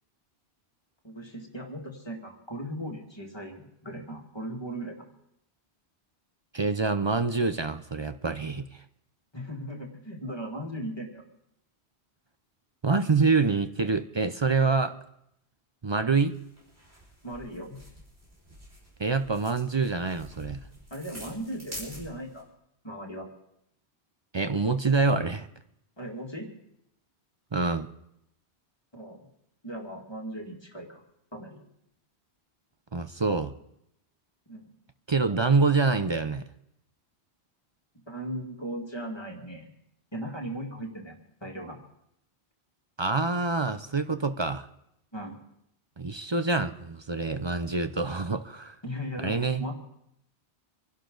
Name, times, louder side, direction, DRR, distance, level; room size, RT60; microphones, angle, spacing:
voice 1, 1.0-5.1 9.3-11.2 17.2-17.8 20.9-22.5 22.8-23.3 26.0-26.5 28.9-29.3 29.6-31.0 31.3-31.6 34.5-34.7 38.1-39.7 40.1-41.1 41.4-41.8 45.1-45.4 48.8-49.7, equal, 25° left, 0 dB, 2.2 m, -38 dB
voice 2, 6.5-8.7 12.8-15.0 15.8-16.4 19.0-20.6 24.3-25.5 27.5-27.9 32.9-33.5 35.1-36.4 43.0-44.7 46.0-48.8 49.2-49.6, right 4 dB, 35° right, 10 dB, 0.5 m, -26 dB
sound 1, 16.3-22.4, equal, 70° right, 5.6 m, -47 dB
26.0 x 11.5 x 3.9 m, 0.79 s
omnidirectional pair, 1.1 m